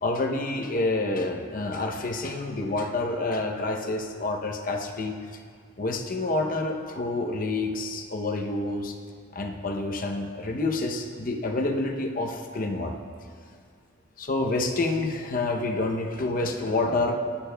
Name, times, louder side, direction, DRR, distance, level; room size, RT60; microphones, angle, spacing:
voice 1, 0.0-5.2 5.8-8.9 9.3-13.0 14.2-17.2, left 2 dB, 45° left, 3 dB, 0.7 m, -28 dB
18.5 x 8.6 x 2.2 m, 2.2 s
head